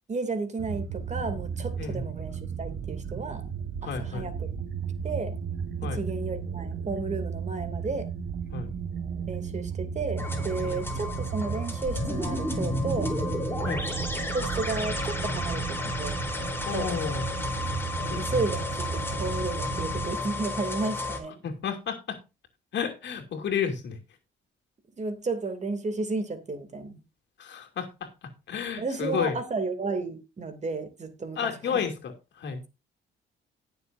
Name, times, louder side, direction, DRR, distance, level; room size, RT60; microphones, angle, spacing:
voice 1, 0.1-3.5 3.8-4.5 5.0-5.4 5.8-8.1 9.3-13.1 14.3-16.2 16.7-17.2 18.0-21.4 25.0-27.0 28.8-31.9, right 3 dB, 35° right, 2.6 m, -33 dB
sound 1, 0.6-20.2, right 6 dB, 55° right, 1.4 m, -34 dB
voice 2, 3.8-4.3 5.8-6.0 8.5-8.7 10.6-11.0 13.6-13.9 16.7-17.3 18.1-18.2 21.4-22.2 22.7-24.0 27.4-28.1 28.5-29.4 31.4-32.6, left 7 dB, 65° left, 2.7 m, -31 dB
sound 2, 10.2-21.2, left 2 dB, 10° left, 3.6 m, -32 dB
18.5 x 7.1 x 2.6 m
cardioid pair, 90°, 20 cm